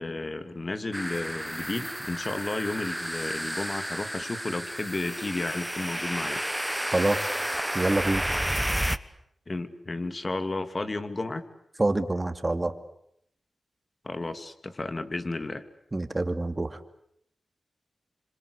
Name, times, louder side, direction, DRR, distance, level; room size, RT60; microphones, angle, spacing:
voice 1, 0.0-6.4 9.5-11.4 14.0-15.6, left 2 dB, 40° left, 10 dB, 2.7 m, -33 dB
sound 1, 0.9-9.0, equal, 5° right, 1.3 m, -31 dB
voice 2, 6.9-7.3 7.7-8.2 11.8-12.7 15.9-16.8, right 2 dB, 30° right, 9 dB, 2.6 m, -26 dB
27.0 x 26.0 x 8.4 m, 0.73 s
cardioid pair, 50°, 0 cm